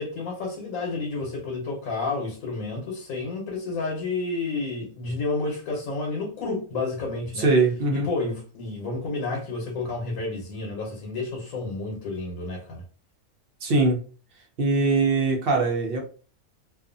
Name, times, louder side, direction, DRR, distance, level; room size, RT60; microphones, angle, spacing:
voice 1, 0.0-7.5 7.9-12.8, left 3 dB, 80° left, 1.2 m, -30 dB
voice 2, 7.4-8.1 13.6-14.0 14.6-16.0, right 3 dB, 55° right, 0.7 m, -21 dB
2.5 x 2.3 x 2.5 m
omnidirectional pair, 1.4 m